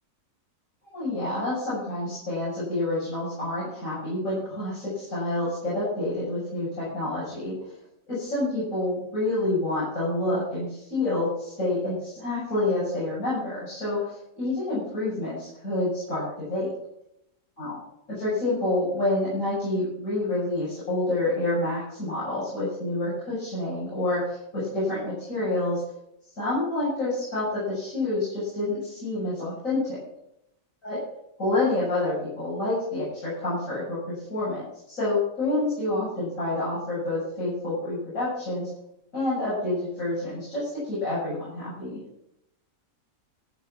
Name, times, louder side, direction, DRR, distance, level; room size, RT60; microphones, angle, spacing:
voice 1, 0.9-7.5 8.1-16.7 17.6-17.8 18.1-25.8 26.4-30.0 30.8-31.0 31.4-38.7 39.1-42.0, left 2 dB, 75° left, -9 dB, 8.0 m, -28 dB
14.5 x 10.5 x 5.9 m, 0.79 s
omnidirectional pair, 1.4 m